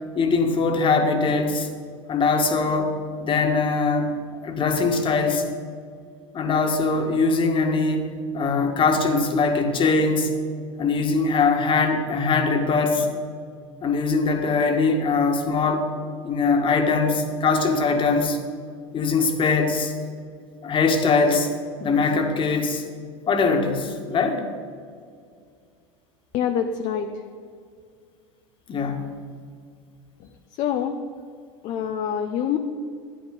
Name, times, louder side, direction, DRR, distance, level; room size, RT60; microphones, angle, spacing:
voice 1, 0.2-1.7 2.1-4.2 4.4-5.5 6.3-10.3 10.8-13.1 13.8-15.9 16.2-18.4 18.9-19.9 20.6-21.5 21.8-22.8 23.3-24.4 28.7-29.1, left 4 dB, 30° left, 4 dB, 1.8 m, -22 dB
voice 2, 26.3-27.1 30.2-30.3 30.6-31.0 31.6-32.6, left 8 dB, 45° left, 5 dB, 0.8 m, -25 dB
13.0 x 9.7 x 5.4 m, 2.2 s
hypercardioid pair, 100°, 16 cm